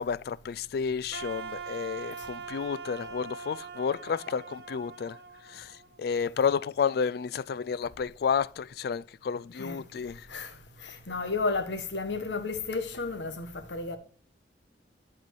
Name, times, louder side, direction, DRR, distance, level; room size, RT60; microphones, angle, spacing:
voice 1, 0.0-5.2 5.5-10.3, left 6 dB, 60° left, 0.3 m, -31 dB
Wind instrument woodwind instrument, 1.1-6.2, right 5 dB, 65° right, 0.9 m, -42 dB
voice 2, 10.8-14.0, left 3 dB, 90° left, 1.2 m, -32 dB
11.0 x 4.4 x 4.6 m
head